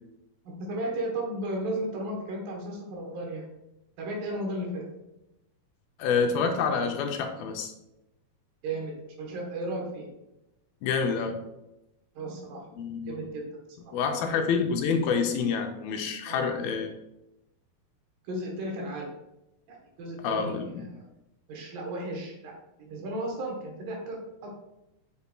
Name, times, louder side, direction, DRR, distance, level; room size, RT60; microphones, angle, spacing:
voice 1, 0.7-3.5 4.0-4.8 8.6-10.1 12.2-12.6 13.1-13.4 16.3-16.5 18.2-19.1 19.7-21.0 21.5-22.5 22.8-24.5, right 1 dB, 70° right, 0 dB, 2.6 m, -34 dB
voice 2, 6.0-7.7 10.8-11.4 12.8-13.2 13.9-16.9 20.2-20.9, left 5 dB, 85° left, 4 dB, 2.3 m, -27 dB
8.2 x 5.4 x 2.2 m, 0.90 s
omnidirectional pair, 4.4 m